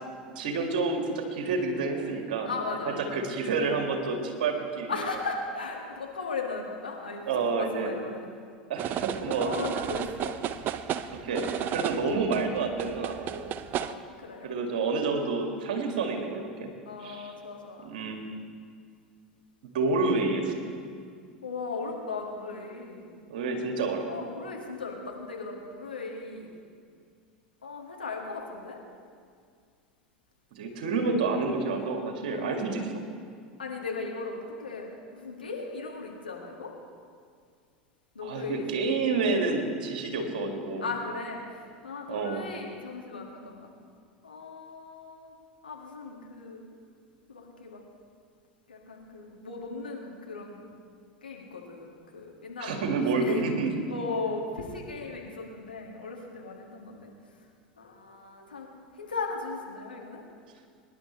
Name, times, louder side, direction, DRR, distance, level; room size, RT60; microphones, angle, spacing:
voice 1, 0.4-5.0 7.3-8.0 8.7-9.5 11.1-13.5 14.4-16.7 17.0-17.3 17.8-18.2 19.7-20.7 23.3-24.1 30.5-32.9 38.2-40.9 42.1-42.5 52.6-53.7, right 4 dB, 65° right, 3 dB, 1.9 m, -29 dB
voice 2, 2.5-3.2 4.9-8.3 9.2-10.4 11.8-11.9 13.8-14.5 16.9-17.9 21.4-23.2 24.1-26.5 27.6-28.8 32.3-32.8 33.6-36.7 38.2-38.7 40.8-43.7 44.2-45.3 45.6-46.6 47.3-47.8 48.7-50.7 51.2-52.9 53.1-53.5 53.9-57.1 57.8-58.7 59.0-60.2, left 4 dB, 85° left, 0 dB, 1.9 m, -37 dB
sound 1, 8.8-13.9, right 9 dB, 40° right, 0.6 m, -33 dB
23.0 x 11.0 x 3.2 m, 2.1 s
figure-of-eight pair, 80°, 5 cm